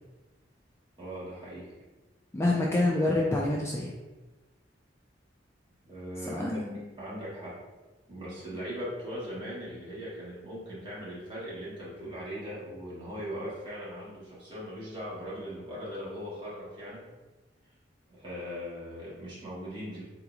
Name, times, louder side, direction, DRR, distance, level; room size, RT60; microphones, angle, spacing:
voice 1, 1.0-1.7 5.8-6.6 7.0-7.6 8.1-17.0 18.1-20.0, equal, 25° right, -8 dB, 1.3 m, -39 dB
voice 2, 2.3-3.9 6.3-6.8, left 2 dB, 15° left, -3 dB, 0.3 m, -27 dB
3.8 x 3.0 x 2.4 m, 1.2 s
head